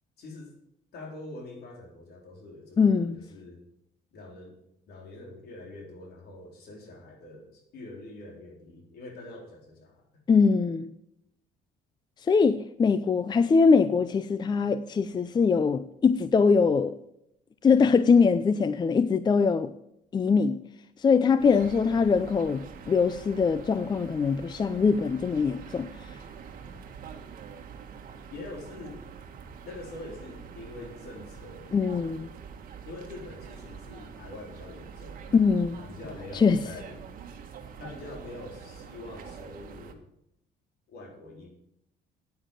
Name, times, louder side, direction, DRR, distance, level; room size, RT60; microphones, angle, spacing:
voice 1, 0.2-0.6 0.9-3.6 4.1-4.6 4.9-10.0 28.3-29.0 29.6-31.8 32.9-35.3 35.8-37.0 37.8-40.0 40.9-41.5, left 2 dB, 70° left, 4.0 m, -44 dB
voice 2, 2.8-3.2 10.3-10.9 12.3-16.9 17.6-19.7 20.1-20.6 21.0-25.9 31.7-32.3 35.3-35.8 36.3-36.6, left 5 dB, 25° left, 0.5 m, -22 dB
sound 1, 21.4-39.9, right 6 dB, 55° right, 1.6 m, -45 dB
9.9 x 9.4 x 5.6 m
cardioid pair, 110°, 17 cm